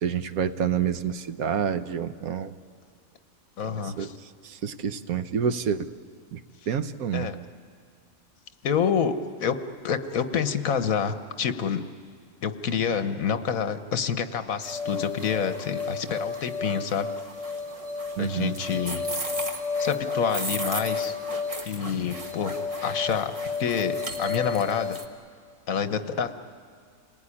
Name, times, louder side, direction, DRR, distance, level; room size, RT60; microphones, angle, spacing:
voice 1, 0.0-2.5 4.0-4.1 4.4-5.9 6.3-6.4 6.7-7.3 18.2-18.5, right 8 dB, 80° right, 11 dB, 1.4 m, -28 dB
voice 2, 3.6-4.2 7.1-7.4 8.6-9.6 9.8-11.8 12.4-17.1 18.2-19.0 19.8-21.2 21.6-25.0 25.7-26.4, left 7 dB, 75° left, 10 dB, 1.5 m, -28 dB
sound 1, 14.6-25.1, left 3 dB, 25° right, 1.5 m, -31 dB
29.0 x 19.5 x 9.9 m, 2.1 s
omnidirectional pair, 1.5 m